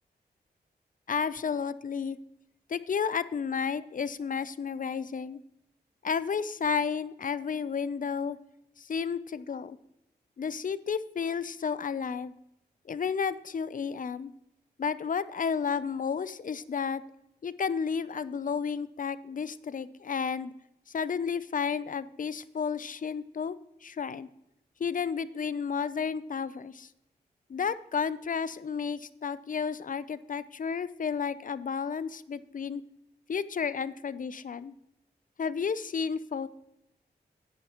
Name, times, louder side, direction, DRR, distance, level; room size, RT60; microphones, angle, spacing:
voice 1, 1.1-2.2 2.7-5.4 6.0-8.4 8.8-9.8 10.4-12.3 12.9-14.3 14.8-17.0 17.4-20.5 20.9-23.6 23.8-24.3 24.8-26.9 27.5-32.8 33.3-34.7 35.4-36.5, left 6 dB, 50° left, 16 dB, 0.5 m, -32 dB
11.0 x 9.0 x 3.0 m, 0.83 s
cardioid pair, 50°, 17 cm